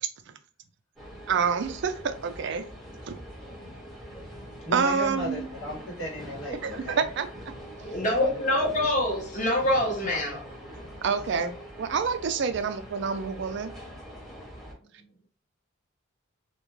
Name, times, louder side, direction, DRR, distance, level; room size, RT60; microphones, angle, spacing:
sound 1, 1.0-14.7, equal, ahead, 0.7 m, -43 dB
voice 1, 1.3-2.6 3.1-3.2 4.7-5.5 6.6-7.3 11.0-11.5 11.8-13.7, right 6 dB, 60° right, 8 dB, 0.4 m, -27 dB
voice 2, 4.6-7.0 8.2-8.4 10.0-10.4 14.5-14.7, equal, 65° left, -2 dB, 1.2 m, -36 dB
voice 3, 7.9-10.4, left 1 dB, 35° left, 0 dB, 0.9 m, -25 dB
2.3 x 2.2 x 3.1 m, 0.37 s
head